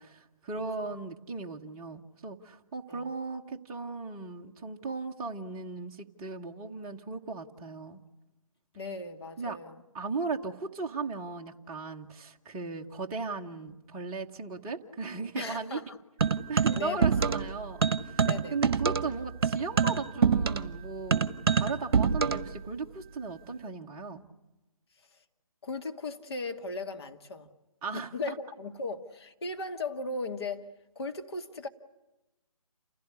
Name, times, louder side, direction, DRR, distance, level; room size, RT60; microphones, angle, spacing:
voice 1, 0.0-8.0 9.4-9.6 9.9-15.8 16.5-24.2 27.8-28.4, right 4 dB, 15° right, 1.1 m, -37 dB
voice 2, 8.7-9.8 15.4-16.0 16.7-17.3 18.2-18.8 25.1-25.2 25.6-27.5 27.9-30.7 31.0-31.7, left 3 dB, 45° left, 2.1 m, -37 dB
sound 1, 16.2-17.5 17.8-22.5, right 6 dB, 45° right, 1.4 m, -26 dB
29.0 x 16.0 x 9.9 m
figure-of-eight pair, 150°, 18 cm